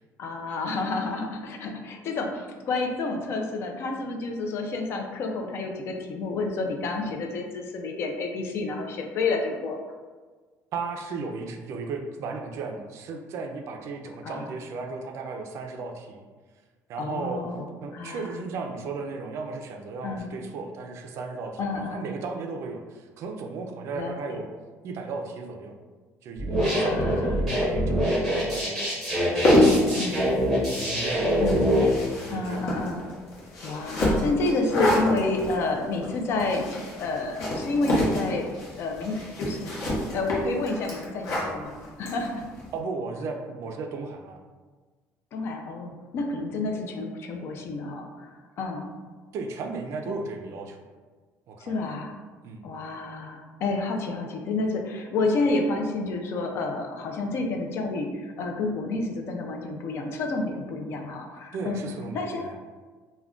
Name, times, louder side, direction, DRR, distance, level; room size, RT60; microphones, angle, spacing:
voice 1, 0.2-9.8 14.2-14.5 17.0-17.6 17.9-18.3 20.0-20.3 21.6-22.0 23.9-24.4 26.6-27.4 30.0-30.2 31.4-31.6 32.3-33.0 33.6-38.5 38.8-39.6 40.1-42.4 45.3-48.9 50.1-50.2 51.6-52.1 52.6-61.8 62.1-62.5, left 3 dB, 45° left, 2 dB, 0.4 m, -29 dB
voice 2, 10.7-16.2 16.9-17.4 17.8-24.5 24.8-25.8 26.2-28.9 29.3-30.1 30.7-32.6 42.7-44.4 49.3-50.8 51.5-51.7 52.4-52.6 61.5-62.6, right 4 dB, 55° right, 3 dB, 0.3 m, -35 dB
sound 1, 26.4-31.8, equal, ahead, 0.9 m, -25 dB
sound 2, 29.2-42.7, left 1 dB, 60° left, 0.8 m, -27 dB
2.3 x 2.1 x 3.5 m, 1.4 s
cardioid pair, 160°, 6 cm